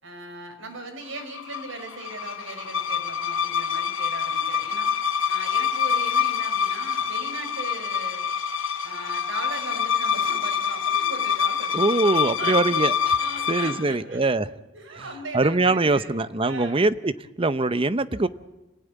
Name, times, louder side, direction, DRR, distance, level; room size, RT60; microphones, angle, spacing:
voice 1, 0.0-4.9 5.3-8.3 8.8-12.8 13.2-14.4 14.7-16.8, right 2 dB, 80° right, 5.1 m, -39 dB
sound 1, 1.2-13.8, left 7 dB, 80° left, 1.0 m, -26 dB
voice 2, 11.7-13.2 13.5-14.5 15.3-17.1 17.4-18.3, right 2 dB, 30° right, 0.8 m, -22 dB
27.0 x 16.5 x 9.3 m
head